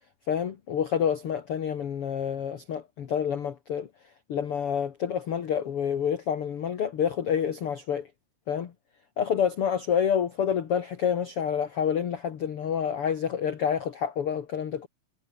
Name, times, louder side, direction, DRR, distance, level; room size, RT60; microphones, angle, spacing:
voice 1, 0.3-3.9 4.3-8.1 8.5-8.7 9.2-14.9, left 8 dB, 55° left, 1.6 m, -28 dB
omnidirectional pair, 4.8 m